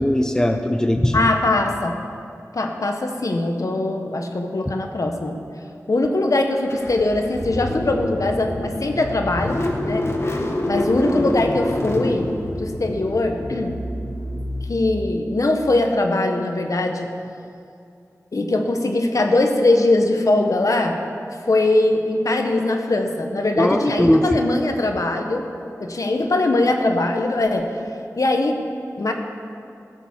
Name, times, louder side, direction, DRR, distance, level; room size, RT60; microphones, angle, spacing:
voice 1, 0.0-1.3 4.7-4.8 23.6-24.3, left 1 dB, 10° left, 6 dB, 0.7 m, -19 dB
voice 2, 1.1-2.0 2.5-5.4 5.9-10.1 10.7-12.3 12.6-13.8 14.7-17.1 18.3-21.0 21.5-25.4 25.8-27.7 28.2-28.6 29.0-29.1, left 2 dB, 65° left, 4 dB, 1.3 m, -21 dB
Car / Engine starting, 6.7-15.5, left 1 dB, 45° left, 1.6 m, -27 dB
16.0 x 7.2 x 7.2 m, 2.6 s
wide cardioid pair, 80°, 6 cm